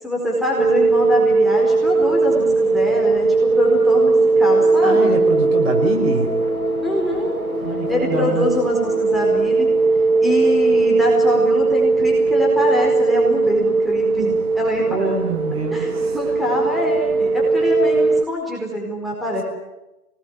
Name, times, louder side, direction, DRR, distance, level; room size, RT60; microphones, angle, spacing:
voice 1, 0.0-5.1 6.8-7.3 7.9-9.7 10.2-15.2 15.7-19.4, equal, ahead, -2 dB, 4.6 m, -24 dB
sound 1, 0.6-18.2, right 3 dB, 70° right, 1.5 m, -19 dB
sound 2, 3.9-12.5, left 2 dB, 65° left, 4.3 m, -32 dB
voice 2, 4.8-6.3 7.6-8.5 14.8-16.2, right 3 dB, 40° right, 3 dB, 5.6 m, -25 dB
24.5 x 20.0 x 9.4 m, 0.99 s
hypercardioid pair, 145°, 45 cm